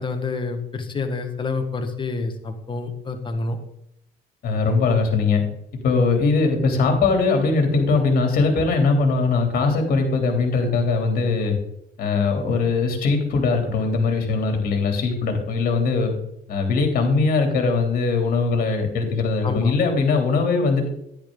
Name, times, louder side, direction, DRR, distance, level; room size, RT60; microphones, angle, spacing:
voice 1, 0.0-3.6 19.4-19.7, left 3 dB, 30° left, 6 dB, 1.7 m, -27 dB
voice 2, 4.4-5.4 5.8-11.6 12.0-16.1 16.5-20.9, left 4 dB, 60° left, 4 dB, 3.2 m, -21 dB
10.5 x 10.5 x 3.9 m, 0.78 s
cardioid pair, 110°, 17 cm